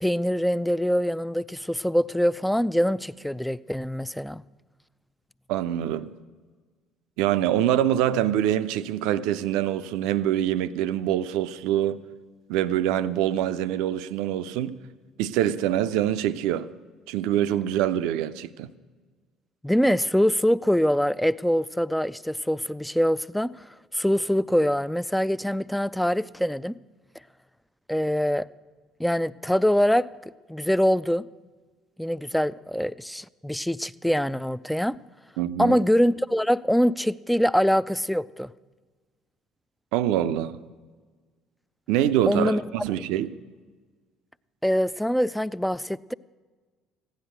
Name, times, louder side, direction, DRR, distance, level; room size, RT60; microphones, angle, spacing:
voice 1, 0.0-4.4 19.6-23.6 23.9-26.7 27.9-28.5 29.0-30.1 30.5-31.3 32.0-35.0 35.6-38.5 42.3-42.6 44.6-46.1, equal, 5° left, 0.3 m, -24 dB
voice 2, 5.5-6.1 7.2-12.0 12.5-14.8 15.2-16.7 17.1-18.7 35.4-35.8 39.9-40.6 41.9-43.3, right 11 dB, 60° right, 0.5 m, -25 dB
15.5 x 10.5 x 6.5 m
figure-of-eight pair, 55°, 0 cm